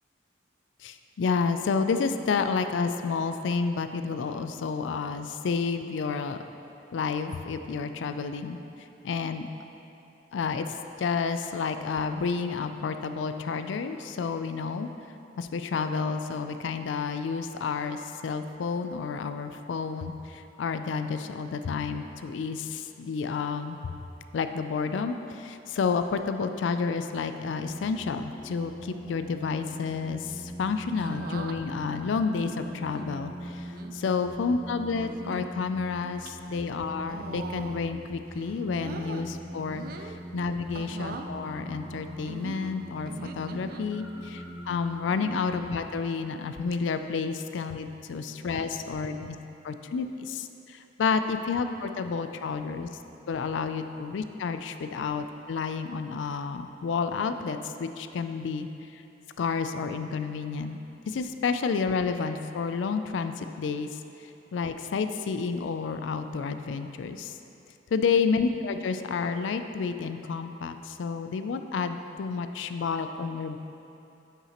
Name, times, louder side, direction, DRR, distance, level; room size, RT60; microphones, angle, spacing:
voice 1, 0.8-6.4 6.9-9.5 10.3-10.7 11.0-14.9 15.4-23.9 24.3-49.4 49.6-52.9 53.3-59.0 59.4-60.8 61.1-63.9 64.5-67.4 67.9-73.6, left 5 dB, 75° left, 8 dB, 0.4 m, -30 dB
sound 1, 27.6-45.7, right 1 dB, 5° right, 0.6 m, -41 dB
sound 2, 31.0-31.6 32.5-33.1 33.7-33.9 34.9-35.5 36.0-36.3 37.0-38.0 38.3-39.3 39.7-40.2 40.7-41.3 42.3-43.8 45.1-45.5 46.1-46.4 46.7-46.8 48.4-48.8 49.9-50.2, right 4 dB, 50° right, 0.3 m, -42 dB
9.7 x 5.7 x 2.9 m, 2.8 s
head